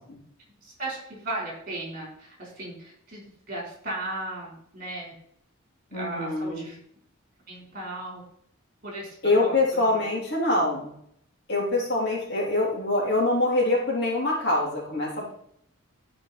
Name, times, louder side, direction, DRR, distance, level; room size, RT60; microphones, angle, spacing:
voice 1, 0.5-5.1 5.9-6.8 7.5-8.2 8.8-9.1 9.4-9.9, right 2 dB, 45° right, -2 dB, 3.8 m, -36 dB
voice 2, 5.9-6.7 9.2-10.9 11.5-15.3, left 2 dB, 50° left, -4 dB, 3.3 m, -24 dB
12.0 x 5.1 x 4.1 m, 0.69 s
head